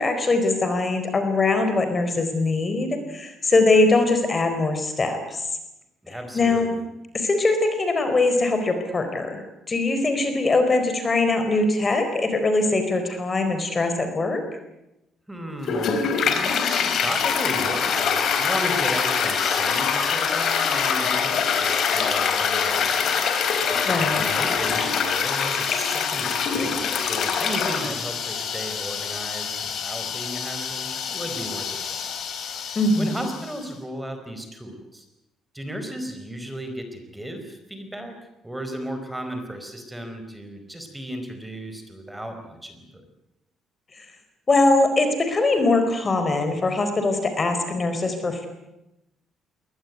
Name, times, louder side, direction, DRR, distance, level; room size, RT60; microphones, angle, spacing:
voice 1, 0.0-5.4 6.1-6.7 7.1-14.4 23.9-24.3 32.7-33.2 44.0-44.1 44.5-48.5, left 2 dB, 30° left, 7 dB, 4.3 m, -22 dB
voice 2, 6.0-6.8 15.3-23.2 23.4-23.8 24.1-32.1 33.0-35.1 35.5-38.2 38.4-43.0, right 1 dB, 10° right, 6 dB, 4.4 m, -35 dB
Toilet flush, 15.6-33.6, left 6 dB, 60° left, 4.0 m, -25 dB
22.0 x 19.0 x 9.4 m, 0.91 s
cardioid pair, 110°, 0 cm